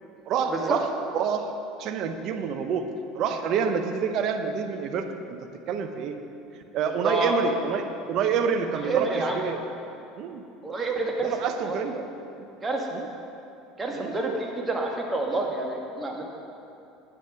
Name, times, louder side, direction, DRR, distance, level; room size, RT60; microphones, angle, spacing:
voice 1, 0.3-0.9 1.1-1.5 1.8-2.9 3.1-5.4 5.7-6.2 6.7-9.7 10.2-10.4 11.2-12.0 12.4-12.5 12.9-13.1 13.9-14.1, right 6 dB, 55° right, 7 dB, 0.9 m, -28 dB
voice 2, 6.9-7.3 8.8-9.4 10.6-11.8 12.6-12.9 13.8-16.2, right 3 dB, 25° right, 0 dB, 1.9 m, -28 dB
9.5 x 8.8 x 5.2 m, 2.7 s
hypercardioid pair, 75°, 0 cm